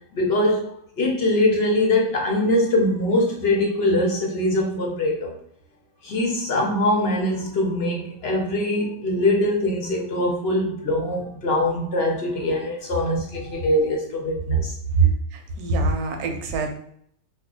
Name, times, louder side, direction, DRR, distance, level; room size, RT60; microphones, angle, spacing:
voice 1, 0.1-5.3 6.0-15.1, left 1 dB, 50° left, 0 dB, 0.8 m, -22 dB
voice 2, 15.3-16.7, right 1 dB, 75° right, 4 dB, 1.0 m, -26 dB
2.6 x 2.4 x 3.6 m, 0.65 s
omnidirectional pair, 1.7 m